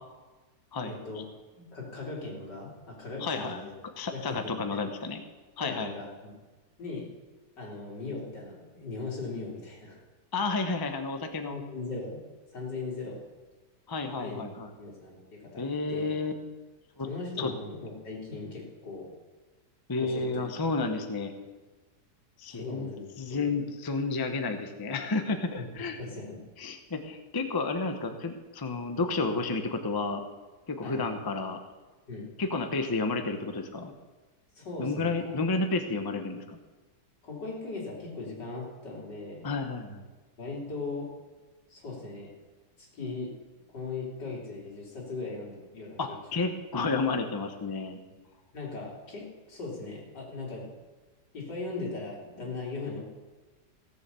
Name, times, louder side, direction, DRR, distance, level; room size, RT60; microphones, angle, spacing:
voice 1, 0.8-1.3 1.5-3.7 4.1-4.8 5.6-6.3 6.8-7.1 7.6-10.0 11.5-12.2 12.5-13.2 14.2-14.5 14.8-16.1 17.0-19.1 20.0-20.6 22.5-23.6 25.6-25.7 26.0-26.4 28.9-29.0 30.8-31.1 32.1-32.3 34.6-35.5 37.2-39.5 40.4-41.1 41.7-42.3 42.8-43.3 43.7-46.5 48.5-50.7 51.3-53.0, left 3 dB, 80° left, -3 dB, 3.7 m, -39 dB
voice 2, 3.2-3.7 4.0-5.2 5.6-6.0 10.3-11.6 13.9-14.7 15.6-16.3 17.0-17.1 17.4-17.5 19.9-21.3 22.4-22.9 23.2-26.0 26.6-30.2 30.7-31.6 32.4-33.9 34.8-36.6 39.4-40.1 46.0-48.0, left 3 dB, 20° left, 6 dB, 0.7 m, -31 dB
16.5 x 7.2 x 6.9 m, 1.3 s
omnidirectional pair, 1.8 m